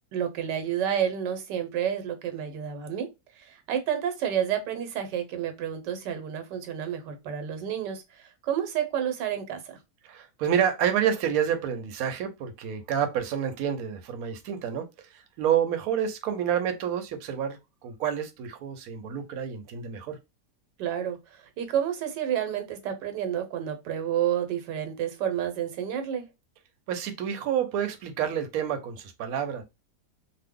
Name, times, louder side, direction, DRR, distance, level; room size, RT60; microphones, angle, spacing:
voice 1, 0.1-3.1 3.5-8.0 8.4-9.6 20.8-21.2 21.6-26.3, right 9 dB, 90° right, 1.3 m, -29 dB
voice 2, 10.0-20.2 26.9-29.6, right 9 dB, 70° right, 1.0 m, -29 dB
2.7 x 2.1 x 3.5 m
omnidirectional pair, 1.8 m